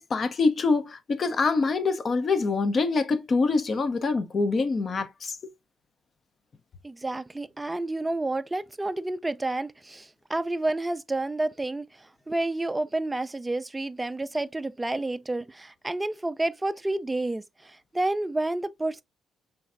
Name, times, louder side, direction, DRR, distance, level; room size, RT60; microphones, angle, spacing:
voice 1, 0.0-5.5, left 4 dB, 45° left, 0.7 m, -25 dB
voice 2, 6.8-19.0, right 2 dB, 15° right, 0.3 m, -30 dB
4.6 x 3.2 x 2.5 m
cardioid pair, 90°, 0 cm